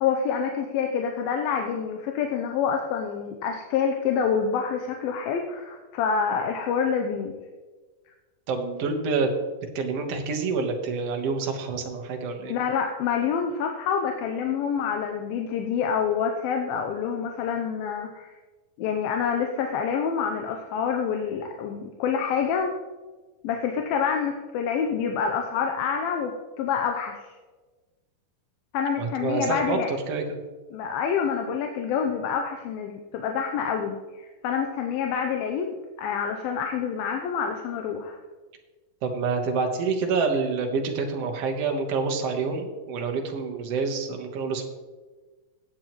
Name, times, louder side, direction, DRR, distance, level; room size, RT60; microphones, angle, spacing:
voice 1, 0.0-7.3 12.5-18.3 18.8-22.7 23.4-27.2 28.7-29.9 30.7-38.2, left 6 dB, 80° left, 3 dB, 2.5 m, -27 dB
voice 2, 8.5-9.3 9.7-12.5 29.0-30.4 39.0-44.6, right 4 dB, 65° right, 3 dB, 1.6 m, -27 dB
16.5 x 8.5 x 3.1 m, 1.3 s
omnidirectional pair, 4.3 m